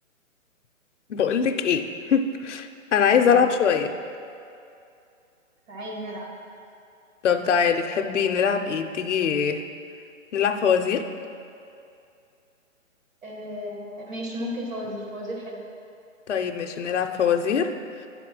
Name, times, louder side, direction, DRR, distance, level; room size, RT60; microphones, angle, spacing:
voice 1, 1.1-3.9 7.2-9.6 10.3-11.1 16.3-17.7, left 7 dB, 60° left, 5 dB, 0.6 m, -22 dB
voice 2, 3.2-3.5 5.7-6.3 13.2-15.7, equal, 70° right, -2 dB, 2.0 m, -34 dB
9.6 x 4.2 x 6.0 m, 2.5 s
hypercardioid pair, 175°, 41 cm